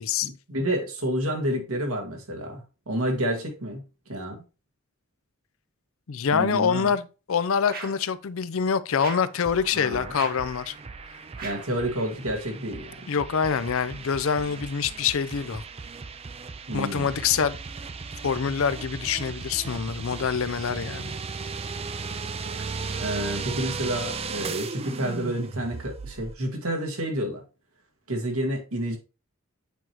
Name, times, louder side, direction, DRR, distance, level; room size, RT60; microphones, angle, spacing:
voice 1, 0.2-3.8 4.1-4.4 6.3-6.9 9.7-10.1 11.4-13.0 16.7-17.1 23.0-27.4 28.1-29.0, right 1 dB, 90° right, 1.9 m, -29 dB
voice 2, 6.1-10.7 13.1-15.6 16.7-17.6 18.2-21.2, left 6 dB, 70° left, 0.5 m, -25 dB
sound 1, 7.7-8.1 9.0-9.4 10.1-10.5 11.4-11.8, right 4 dB, 45° right, 1.2 m, -39 dB
sound 2, 9.4-26.3, right 4 dB, 30° right, 0.4 m, -36 dB
8.2 x 4.6 x 2.9 m
head